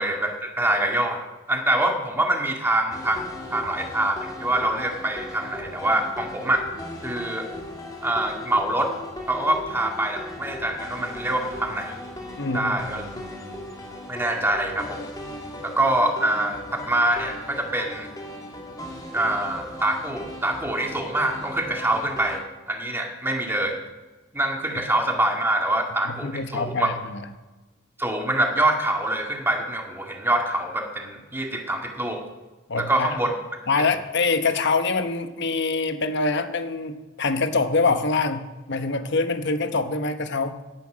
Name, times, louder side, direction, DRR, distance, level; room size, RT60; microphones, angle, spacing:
voice 1, 0.0-3.2 3.5-6.7 7.0-7.5 8.0-8.9 9.3-12.0 12.5-13.0 14.1-15.1 15.6-18.1 19.1-23.8 24.3-26.9 28.0-32.2 32.8-33.3, right 1 dB, 10° right, 1 dB, 2.1 m, -25 dB
sound 1, 2.9-22.4, left 1 dB, 20° left, 2.2 m, -38 dB
voice 2, 12.4-12.7 26.0-27.3 32.7-33.1 33.7-40.6, left 3 dB, 55° left, 9 dB, 1.2 m, -25 dB
17.5 x 10.5 x 6.3 m, 1.2 s
head